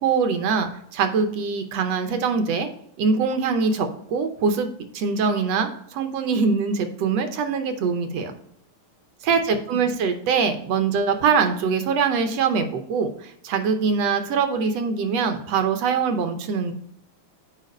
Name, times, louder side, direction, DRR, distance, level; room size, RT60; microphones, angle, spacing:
voice 1, 0.0-2.7 3.0-4.7 4.9-8.3 9.2-16.7, right 5 dB, 70° right, 7 dB, 1.7 m, -23 dB
6.5 x 4.7 x 5.1 m, 0.71 s
omnidirectional pair, 3.3 m